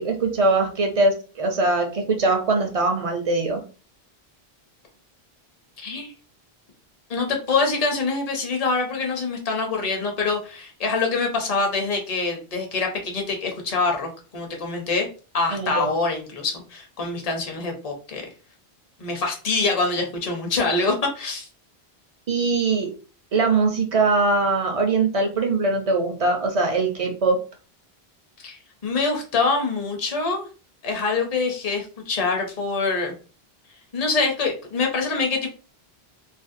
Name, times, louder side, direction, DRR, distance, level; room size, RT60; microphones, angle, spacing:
voice 1, 0.0-3.6 15.5-15.9 22.3-22.9 23.3-27.4, right 3 dB, 50° right, 3 dB, 0.4 m, -22 dB
voice 2, 5.8-6.1 7.1-15.1 15.3-18.3 19.0-21.5 28.4-30.5 30.8-33.1 33.9-35.5, left 3 dB, 40° left, 1 dB, 0.7 m, -25 dB
2.5 x 2.1 x 2.5 m, 0.36 s
omnidirectional pair, 1.1 m